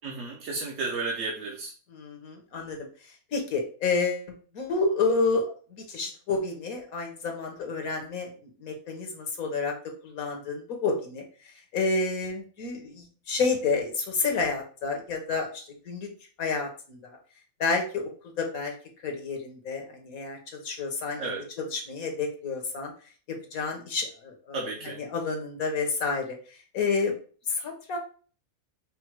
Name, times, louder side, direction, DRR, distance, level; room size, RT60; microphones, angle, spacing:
voice 1, 0.0-1.7 21.2-21.4 24.5-25.0, right 3 dB, 65° right, 0 dB, 1.1 m, -33 dB
voice 2, 1.9-2.8 3.3-4.3 4.5-5.4 5.9-8.3 8.6-9.7 10.0-11.2 11.7-16.1 16.4-17.0 17.6-18.1 18.4-18.7 19.0-22.9 23.5-26.4 26.7-27.1 27.5-28.0, left 4 dB, 90° left, 3 dB, 1.6 m, -29 dB
5.3 x 2.2 x 4.6 m, 0.40 s
omnidirectional pair, 1.4 m